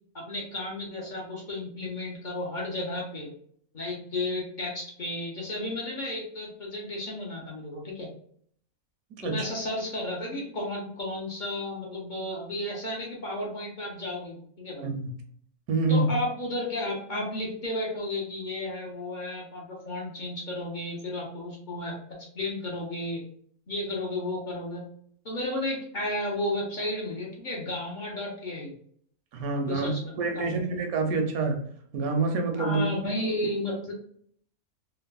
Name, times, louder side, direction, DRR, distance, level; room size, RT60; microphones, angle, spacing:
voice 1, 0.1-3.3 3.7-8.1 9.2-14.9 15.9-23.2 23.7-24.9 25.2-28.7 29.5-30.6 32.5-33.9, left 1 dB, 45° left, -3 dB, 0.6 m, -33 dB
voice 2, 15.7-16.1 29.3-29.9 30.2-31.6 31.9-32.8, right 3 dB, 80° right, 4 dB, 1.1 m, -26 dB
3.3 x 2.1 x 2.2 m, 0.63 s
omnidirectional pair, 1.5 m